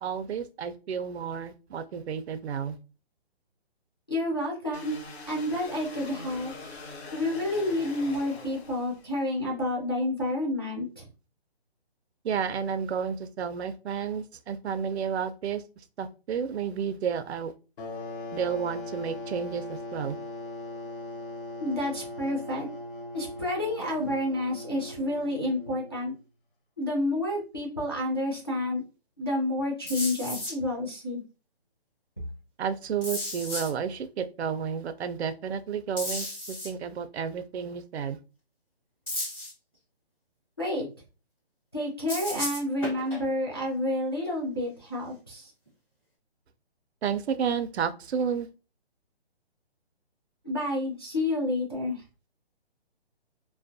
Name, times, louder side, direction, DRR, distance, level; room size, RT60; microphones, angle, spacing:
voice 1, 0.0-2.8 12.2-15.6 16.0-17.5 18.3-20.2 32.6-38.2 47.0-48.5, right 7 dB, 80° right, 0.5 m, -31 dB
voice 2, 4.1-4.9 5.3-6.5 7.1-11.1 21.6-22.7 23.1-26.1 26.8-28.8 29.2-31.2 40.6-40.9 41.7-45.5 50.4-52.0, left 1 dB, 25° left, 0.3 m, -29 dB
sound 1, 4.7-9.3, left 3 dB, 80° left, 1.1 m, -43 dB
sound 2, 17.8-26.2, left 2 dB, 55° left, 0.7 m, -39 dB
sound 3, 29.9-30.5 33.0-33.7 36.0-36.7 39.1-39.5 42.1-43.2 45.7-45.8, left 1 dB, 5° left, 0.8 m, -33 dB
2.3 x 2.1 x 2.5 m
hypercardioid pair, 160°, 32 cm